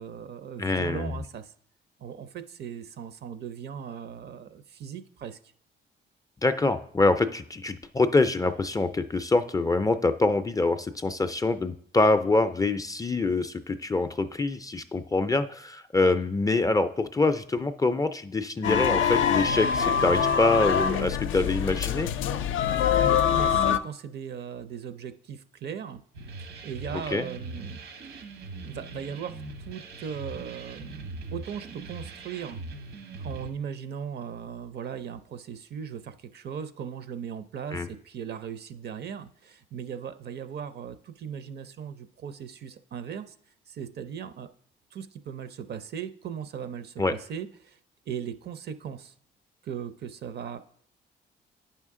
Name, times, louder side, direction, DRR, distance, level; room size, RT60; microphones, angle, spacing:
voice 1, 0.0-1.5 2.0-5.4 22.8-26.0 26.4-27.8 28.6-32.6 33.2-43.3 43.7-44.5 44.9-47.8 48.1-49.1 49.6-50.6, right 8 dB, 55° right, 12 dB, 0.6 m, -38 dB
voice 2, 0.6-1.2 6.4-22.1 27.1-27.3 37.7-37.9 47.0-47.1, left 3 dB, 20° left, 10 dB, 0.4 m, -25 dB
sound 1, 18.6-23.8, left 7 dB, 80° left, 0.4 m, -24 dB
sound 2, 26.1-33.5, right 3 dB, 80° right, 1.1 m, -41 dB
9.0 x 5.6 x 3.6 m, 0.63 s
cardioid pair, 90°, 20 cm